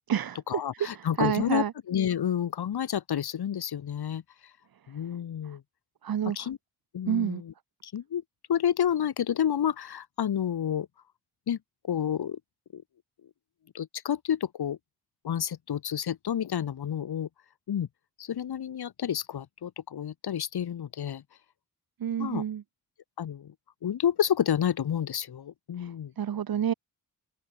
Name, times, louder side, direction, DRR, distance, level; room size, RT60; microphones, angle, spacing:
voice 1, 0.5-4.5 4.9-5.6 6.3-6.6 6.9-7.5 7.8-8.2 8.5-10.9 11.5-11.6 11.8-12.4 12.7-12.8 13.7-14.8 15.2-17.3 17.7-17.9 18.2-21.2 22.2-22.4 23.2-23.5 23.8-26.1, left 9 dB, 90° left, 5.1 m, -30 dB
voice 2, 1.2-1.7 6.0-6.4 7.1-7.4 22.0-22.6 25.8-25.9 26.2-26.7, right 9 dB, 70° right, 1.4 m, -28 dB
open air
cardioid pair, 85°, 37 cm